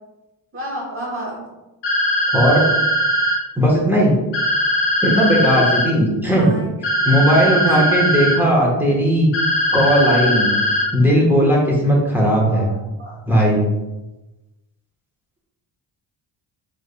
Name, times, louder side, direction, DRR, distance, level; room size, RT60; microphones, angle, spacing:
voice 1, 0.5-1.4 6.3-6.7 7.6-7.8 12.5-13.2, equal, 30° right, -3 dB, 1.3 m, -31 dB
sound 1, 1.8-3.4 4.3-5.9 6.8-8.4 9.3-10.9, left 1 dB, 80° left, 1.0 m, -19 dB
voice 2, 2.3-2.6 3.6-4.1 5.0-6.5 7.0-9.3 9.7-10.5 10.9-12.7 13.3-13.6, equal, 5° right, -4 dB, 1.2 m, -16 dB
3.8 x 3.5 x 2.3 m, 1.0 s
cardioid pair, 80°, 44 cm